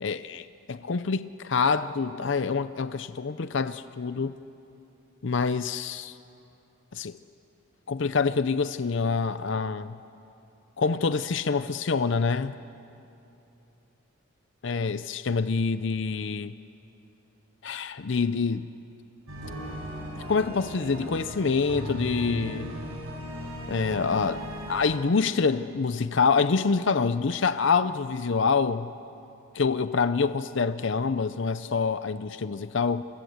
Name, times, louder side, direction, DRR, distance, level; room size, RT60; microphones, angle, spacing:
voice 1, 0.0-4.4 5.2-6.2 6.9-7.2 7.9-10.0 10.8-12.6 14.6-16.5 17.6-18.7 20.3-22.7 23.7-28.9 29.5-33.0, left 5 dB, 60° left, 0.6 m, -26 dB
sound 1, 19.3-25.0, equal, 85° right, 6.1 m, -37 dB
29.0 x 23.0 x 8.0 m
head